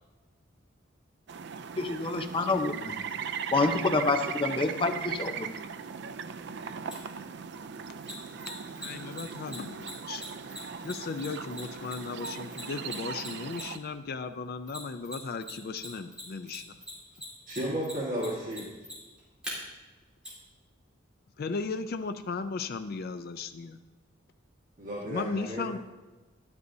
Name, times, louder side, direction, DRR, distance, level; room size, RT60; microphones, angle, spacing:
sound 1, 1.3-13.8, right 6 dB, 60° right, 0.5 m, -38 dB
voice 1, 1.8-2.9 3.5-5.5, left 3 dB, 30° left, 6 dB, 0.7 m, -27 dB
Mechanisms, 6.9-7.0 8.0-13.9 14.7-15.5 15.8-19.5 20.2-20.3, equal, 5° right, 3.3 m, -41 dB
voice 2, 8.8-10.2 10.8-16.8 21.4-23.8 25.0-25.8, left 4 dB, 55° left, 8 dB, 0.4 m, -36 dB
voice 3, 17.5-18.7 24.8-25.7, equal, 45° right, -4 dB, 1.6 m, -33 dB
12.0 x 9.5 x 2.7 m, 1.2 s
head